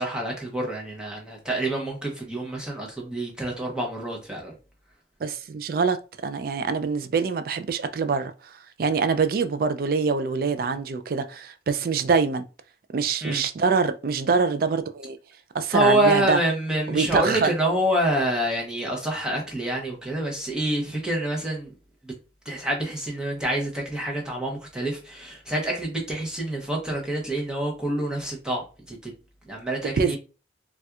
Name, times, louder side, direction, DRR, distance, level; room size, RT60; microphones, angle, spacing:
voice 1, 0.0-4.5 13.2-13.4 15.7-21.7 22.0-22.1 22.5-28.6 28.9-29.1 29.5-30.2, right 1 dB, 5° right, 0.8 m, -27 dB
voice 2, 5.2-6.0 6.2-8.3 8.8-12.5 12.9-15.2 15.5-16.4 16.9-17.5 29.9-30.2, right 5 dB, 50° right, 0.3 m, -24 dB
4.2 x 2.3 x 2.3 m
head